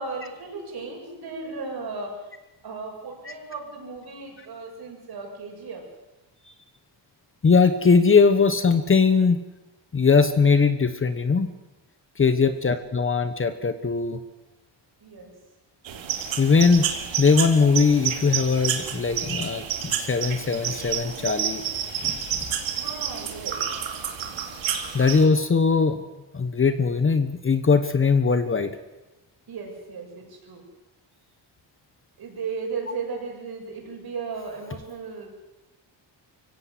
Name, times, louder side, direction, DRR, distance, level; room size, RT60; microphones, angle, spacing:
voice 1, 0.0-2.3 2.6-5.8 15.0-15.3 22.7-23.7 29.5-30.6 32.2-35.3, right 4 dB, 55° right, 0 dB, 7.2 m, -36 dB
voice 2, 7.4-9.4 9.9-11.5 12.2-14.2 16.4-16.9 17.2-21.6 22.0-22.4 24.9-26.0 26.3-28.8, left 5 dB, 30° left, 10 dB, 1.1 m, -20 dB
sound 1, 15.8-25.2, right 8 dB, 85° right, 2.9 m, -30 dB
23.5 x 16.5 x 7.8 m, 1.0 s
cardioid pair, 135°, 45 cm